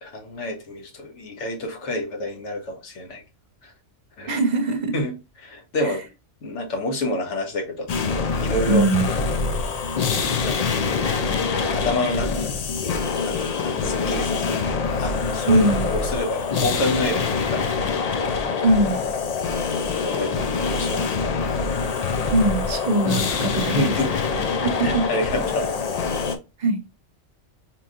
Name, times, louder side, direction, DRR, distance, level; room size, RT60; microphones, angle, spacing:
voice 1, 0.0-3.2 3.6-3.7 4.2-4.4 4.9-5.1 5.4-6.0 6.4-7.9 8.4-8.8 10.2-10.7 11.7-12.5 13.2-15.6 15.9-17.7 18.4-18.6 20.0-21.6 23.6-24.1 24.8-25.7, left 1 dB, 75° left, 1.4 m, -28 dB
voice 2, 4.3-4.9 5.8-6.0 8.7-9.1 15.5-15.9 18.6-19.0 22.3-23.9 24.5-25.1 26.6-26.8, right 2 dB, 45° right, 0.7 m, -21 dB
sound 1, 7.9-26.4, left 5 dB, 60° left, 0.4 m, -25 dB
4.5 x 2.9 x 2.4 m
omnidirectional pair, 1.2 m